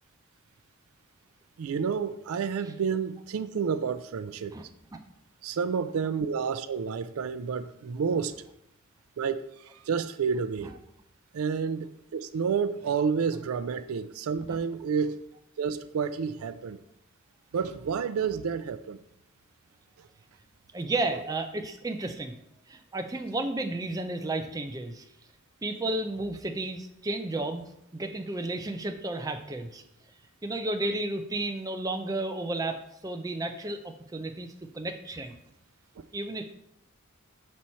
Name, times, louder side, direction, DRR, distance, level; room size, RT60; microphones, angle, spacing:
voice 1, 1.6-4.5 5.4-8.3 9.2-9.4 9.9-10.7 11.3-11.9 12.1-15.2 15.6-16.8 17.5-19.0, right 6 dB, 75° right, 13 dB, 0.4 m, -29 dB
voice 2, 20.7-22.3 22.7-25.0 25.6-27.6 27.9-29.8 30.4-34.5 34.7-35.3 36.1-36.4, right 2 dB, 15° right, 5 dB, 0.4 m, -32 dB
6.1 x 4.2 x 4.3 m, 0.81 s
head